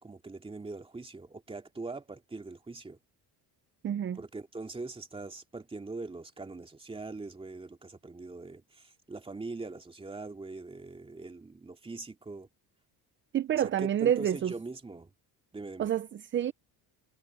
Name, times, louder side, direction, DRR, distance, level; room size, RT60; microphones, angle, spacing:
voice 1, 0.0-3.0 4.1-12.5 13.5-15.1 15.5-15.9, right 3 dB, 15° right, 2.5 m, -42 dB
voice 2, 3.8-4.2 13.3-14.5 15.8-16.5, right 10 dB, 30° right, 0.5 m, -28 dB
cardioid pair, 145°, 43 cm